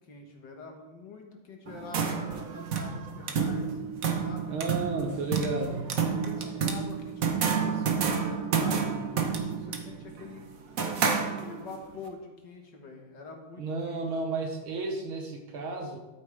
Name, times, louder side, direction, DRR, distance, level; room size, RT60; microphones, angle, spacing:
voice 1, 0.0-3.8 4.2-4.6 5.9-9.0 9.4-10.5 11.1-14.1, left 3 dB, 60° left, 2 dB, 1.8 m, -45 dB
sound 1, 1.7-11.8, right 6 dB, 50° right, 1.2 m, -30 dB
voice 2, 4.5-5.9 13.6-16.0, right 3 dB, 70° right, 2 dB, 2.2 m, -32 dB
12.0 x 8.9 x 3.3 m, 1.1 s
omnidirectional pair, 2.4 m